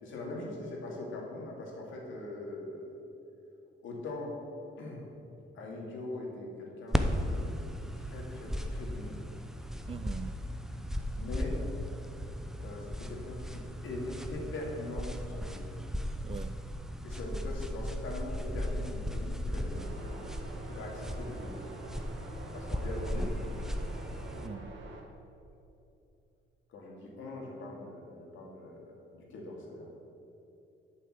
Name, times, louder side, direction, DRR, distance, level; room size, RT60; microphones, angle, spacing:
voice 1, 0.0-3.0 3.8-4.4 4.8-5.1 5.5-9.2 11.1-11.6 12.6-15.7 17.0-21.9 22.5-24.3 26.7-29.9, left 2 dB, 80° left, -2 dB, 2.4 m, -42 dB
sound 1, 6.9-24.5, equal, ahead, 0.7 m, -36 dB
voice 2, 9.9-10.5 16.2-16.6 24.3-24.8, right 6 dB, 30° right, 13 dB, 0.4 m, -42 dB
sound 2, 19.7-25.0, right 2 dB, 65° right, 1.7 m, -47 dB
8.8 x 5.7 x 7.8 m, 2.8 s
cardioid pair, 90°, 20 cm